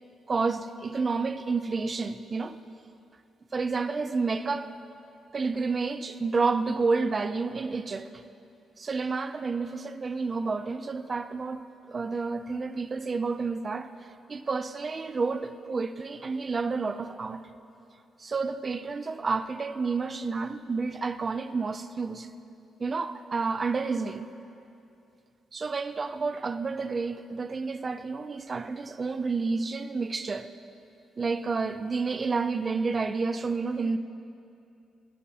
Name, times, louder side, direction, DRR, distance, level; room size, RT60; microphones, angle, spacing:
voice 1, 0.3-2.6 3.5-4.7 5.3-8.1 8.8-13.9 14.3-17.4 18.2-22.3 22.8-24.3 25.5-30.5 31.2-34.0, right 4 dB, 25° right, 0.3 m, -30 dB
18.5 x 8.4 x 2.8 m
cardioid pair, 175°, 0 cm